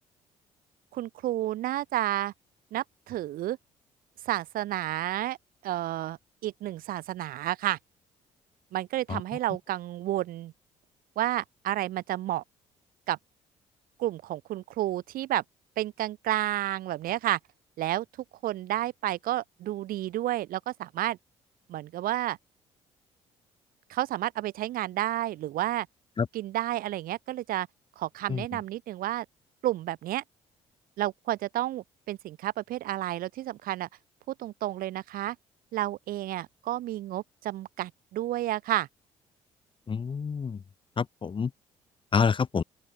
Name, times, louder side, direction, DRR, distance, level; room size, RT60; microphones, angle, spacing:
voice 1, 0.9-2.3 2.7-3.6 4.2-5.4 5.6-6.2 6.4-7.8 8.7-10.5 11.2-12.4 13.1-13.2 14.0-15.4 15.8-17.4 17.8-18.0 18.4-21.2 21.7-22.4 23.9-25.9 26.3-27.7 28.0-29.2 29.6-30.2 31.0-33.9 34.4-35.4 35.7-38.9, right 14 dB, 70° right, 3.0 m, -31 dB
voice 2, 39.9-40.6 41.0-41.5 42.1-42.6, left 6 dB, 35° left, 0.8 m, -27 dB
open air
hypercardioid pair, 60°, 15 cm